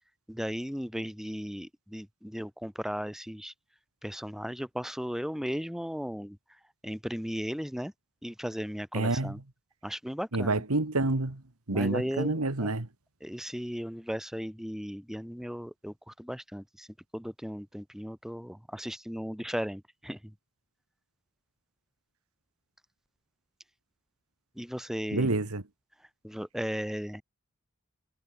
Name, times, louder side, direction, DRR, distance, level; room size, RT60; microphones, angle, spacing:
voice 1, 0.3-3.5 4.0-6.4 6.8-7.9 8.2-9.4 9.8-10.6 11.7-12.7 13.2-16.9 17.1-20.2 24.6-25.3 26.2-27.2, equal, ahead, 4.1 m, -36 dB
voice 2, 8.9-9.4 10.3-11.4 11.7-12.9 25.1-25.6, right 2 dB, 85° right, 1.9 m, -28 dB
head